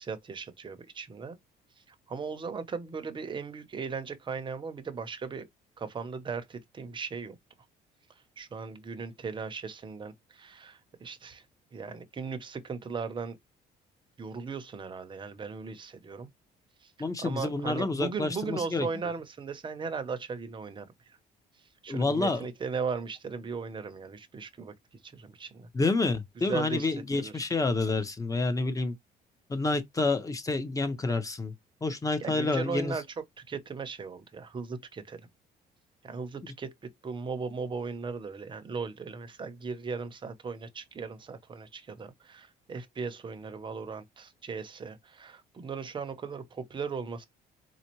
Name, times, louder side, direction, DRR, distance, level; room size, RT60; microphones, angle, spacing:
voice 1, 0.0-1.4 1.9-5.5 5.8-7.4 8.4-11.4 11.7-13.4 14.2-16.3 16.8-21.2 21.8-24.7 25.0-25.7 26.4-26.9 27.1-27.5 32.2-35.3 36.0-47.3, right 5 dB, 30° right, 0.8 m, -37 dB
voice 2, 17.0-18.9 21.9-22.5 25.7-28.9 29.5-31.5 31.8-32.9, left 3 dB, 20° left, 0.9 m, -28 dB
4.3 x 2.2 x 3.0 m
cardioid pair, 110°, 17 cm